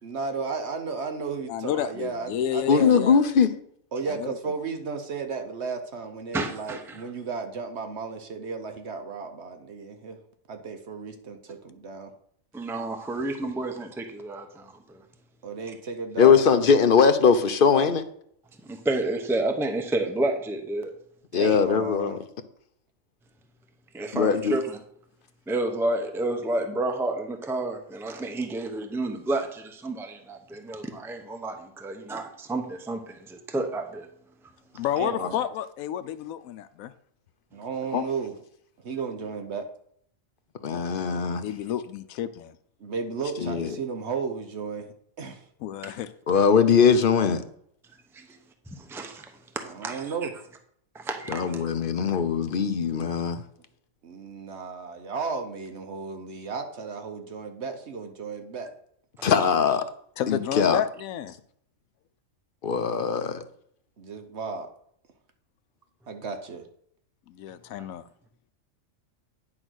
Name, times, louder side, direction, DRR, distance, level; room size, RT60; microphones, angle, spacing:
voice 1, 0.0-3.0 3.9-10.2 10.5-12.1 15.4-16.4 21.3-22.2 35.0-35.4 37.5-38.4 38.8-39.7 42.8-44.9 45.2-45.4 49.6-50.3 54.0-58.7 64.0-64.7 66.1-66.6, right 5 dB, 55° right, 6 dB, 1.1 m, -34 dB
voice 2, 1.5-3.2 4.1-4.4 34.8-36.9 41.4-42.6 45.6-46.1 60.2-61.3 67.3-68.0, left 10 dB, 90° left, 12 dB, 1.0 m, -30 dB
voice 3, 2.7-3.5 16.2-18.0 21.3-22.2 24.1-24.6 35.2-35.3 37.9-38.0 40.6-41.4 43.4-43.8 46.3-47.4 51.3-53.4 59.2-59.8 60.3-60.8 62.6-63.4, left 6 dB, 50° left, 10 dB, 0.7 m, -21 dB
voice 4, 6.3-7.0 12.5-15.0 18.6-20.9 23.9-24.8 25.5-34.1 48.1-48.3 48.7-49.3 49.8-50.3 50.9-51.6, right 2 dB, ahead, 4 dB, 0.7 m, -30 dB
9.8 x 3.9 x 6.2 m, 0.67 s
omnidirectional pair, 1.4 m